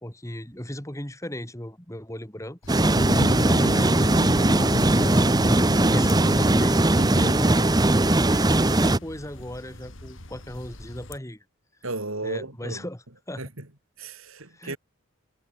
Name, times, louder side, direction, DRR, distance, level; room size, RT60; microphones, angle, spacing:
voice 1, 0.0-2.6 3.4-6.8 7.2-11.4 12.2-13.4 14.5-14.8, left 1 dB, 15° left, 3.0 m, -37 dB
sound 1, 2.6-11.2, left 2 dB, 60° left, 3.8 m, -44 dB
sound 2, 2.7-9.0, right 2 dB, 20° right, 0.8 m, -20 dB
sound 3, 3.0-7.3, left 1 dB, 35° left, 1.3 m, -30 dB
voice 2, 6.9-7.4 11.8-12.8 13.4-13.7 14.0-14.8, right 2 dB, 75° right, 4.3 m, -34 dB
head